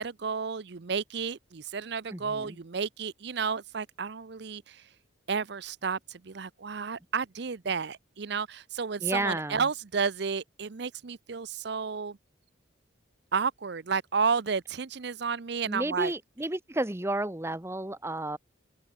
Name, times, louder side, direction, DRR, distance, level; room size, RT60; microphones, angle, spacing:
voice 1, 0.0-4.9 5.3-12.2 13.3-16.1, right 5 dB, 60° right, 0.6 m, -32 dB
voice 2, 2.1-2.6 9.0-9.6 15.7-18.4, right 1 dB, 15° right, 1.0 m, -32 dB
open air
head